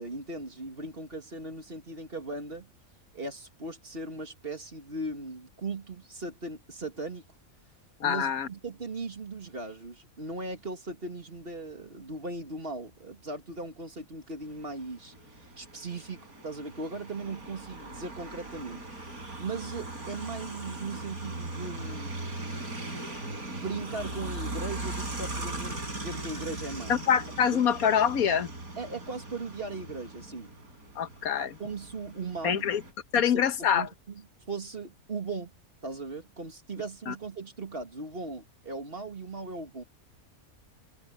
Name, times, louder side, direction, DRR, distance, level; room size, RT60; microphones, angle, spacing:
voice 1, 0.0-2.7 3.1-7.2 8.0-18.8 19.4-22.2 23.5-26.9 27.5-27.6 28.8-30.5 31.6-32.7 33.1-33.4 33.7-34.2 34.5-35.5 35.8-39.8, right 3 dB, 40° right, 2.5 m, -38 dB
voice 2, 8.0-8.5 26.9-28.5 31.0-31.6 32.4-32.8 33.1-33.9 37.1-37.2, left 8 dB, 80° left, 1.5 m, -25 dB
sound 1, 14.5-32.9, right 2 dB, 90° right, 5.9 m, -39 dB
omnidirectional pair, 1.5 m